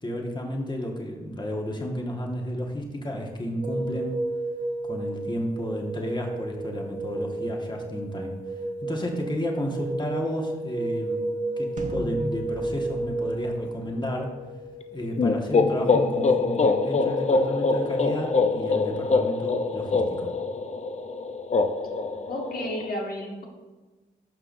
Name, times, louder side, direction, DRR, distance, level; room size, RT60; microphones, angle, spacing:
voice 1, 0.0-4.2 4.8-8.4 8.8-14.4 14.9-20.3, equal, 25° left, 0 dB, 1.5 m, -32 dB
sound 1, 3.6-19.1, right 2 dB, 90° right, 1.0 m, -33 dB
sound 2, 11.8-14.3, right 1 dB, 50° right, 1.3 m, -37 dB
sound 3, 15.2-22.9, left 3 dB, 40° left, 0.5 m, -24 dB
voice 2, 22.3-23.4, left 1 dB, 65° left, -1 dB, 1.8 m, -32 dB
11.0 x 5.7 x 2.6 m, 1.2 s
supercardioid pair, 50°, 17 cm